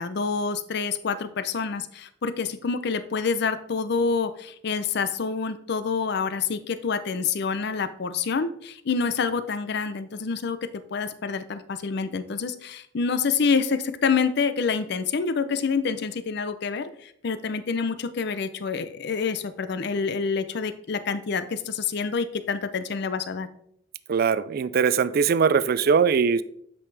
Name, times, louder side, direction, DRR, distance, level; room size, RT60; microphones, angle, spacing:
voice 1, 0.0-23.5, left 5 dB, 65° left, 12 dB, 0.5 m, -27 dB
voice 2, 24.1-26.4, right 6 dB, 55° right, 16 dB, 0.4 m, -21 dB
8.4 x 5.3 x 3.3 m, 0.68 s
head